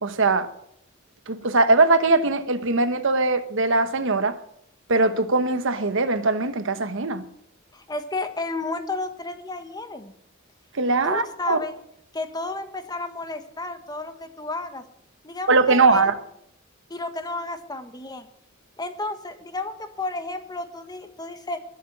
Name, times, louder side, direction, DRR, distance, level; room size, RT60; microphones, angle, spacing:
voice 1, 0.0-0.5 1.3-4.4 4.9-7.2 10.7-11.6 15.5-16.1, right 3 dB, 65° right, 1.2 m, -21 dB
voice 2, 7.7-10.1 11.0-11.7 12.1-14.8 15.2-16.1 16.9-18.3 18.8-21.6, left 2 dB, 20° left, 1.4 m, -32 dB
20.5 x 7.4 x 6.2 m
head